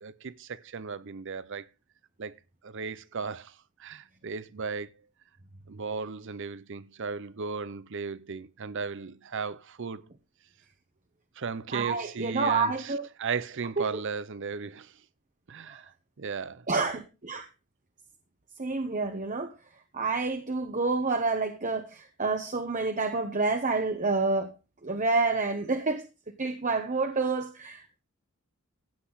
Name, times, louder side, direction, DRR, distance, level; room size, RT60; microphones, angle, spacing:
voice 1, 0.0-1.7 2.2-2.4 2.6-4.9 5.7-10.1 11.4-15.0 15.5-15.9 16.2-16.7, right 5 dB, 55° right, 0.7 m, -36 dB
voice 2, 11.7-13.1 13.8-13.9 16.7-17.5 18.6-19.5 19.9-24.5 24.8-26.0 26.4-28.0, right 3 dB, 35° right, 1.1 m, -28 dB
15.5 x 8.3 x 4.0 m
head